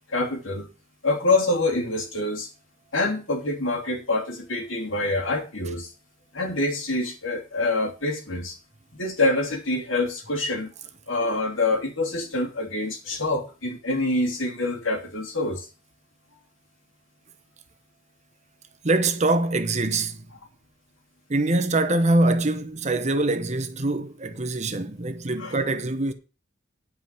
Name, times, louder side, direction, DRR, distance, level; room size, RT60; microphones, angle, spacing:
voice 1, 0.1-0.7 1.0-2.5 2.9-5.9 6.3-8.6 8.9-10.7 11.1-15.7 25.4-25.6, left 2 dB, 80° left, 3.0 m, -26 dB
voice 2, 18.8-20.2 21.3-26.1, right 2 dB, 35° right, 1.0 m, -24 dB
9.6 x 5.5 x 8.3 m
head